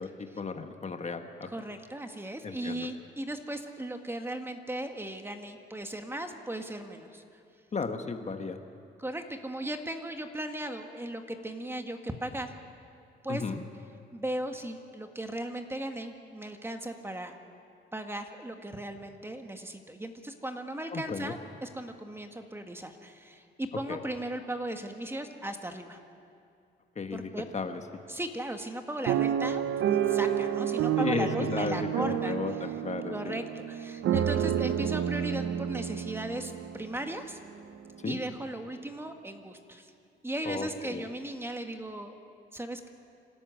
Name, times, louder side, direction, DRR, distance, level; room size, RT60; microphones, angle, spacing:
voice 1, 0.0-1.5 2.4-2.9 7.7-8.6 13.3-13.6 20.9-21.3 23.9-24.0 27.0-27.8 31.0-33.4 38.0-38.2 40.4-41.1, left 4 dB, 35° left, 6 dB, 1.4 m, -34 dB
voice 2, 1.5-7.2 9.0-12.5 13.2-13.4 14.1-17.4 17.9-26.0 27.1-27.5 28.1-32.4 33.1-37.4 38.0-39.9 40.2-42.1 42.5-42.9, right 1 dB, 10° right, 5 dB, 1.8 m, -37 dB
sound 1, 29.1-37.2 37.8-37.9 38.1-38.4, right 10 dB, 80° right, 0.9 m, -30 dB
26.5 x 13.0 x 9.5 m, 2.5 s
cardioid pair, 90°, 20 cm